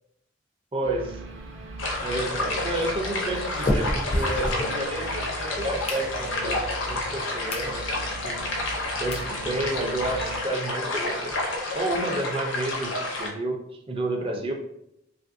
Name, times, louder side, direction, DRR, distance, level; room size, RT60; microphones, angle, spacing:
voice 1, 0.7-1.2 2.0-6.6 6.9-8.4 9.0-11.4 11.7-14.5, right 2 dB, 30° right, 2 dB, 0.5 m, -30 dB
sound 1, 0.8-10.4, right 2 dB, 85° right, 0.5 m, -39 dB
sound 2, 1.3-5.2 5.6-6.6 7.1-7.2 7.5-7.7 8.2-8.3 8.8-8.9 9.1-9.3 9.7-9.8 10.0-10.1 10.4-10.5 10.8-12.0, left 1 dB, 35° left, 0.4 m, -32 dB
sound 3, 1.8-13.3, left 2 dB, 80° left, 0.7 m, -30 dB
2.9 x 2.5 x 2.5 m, 0.81 s
head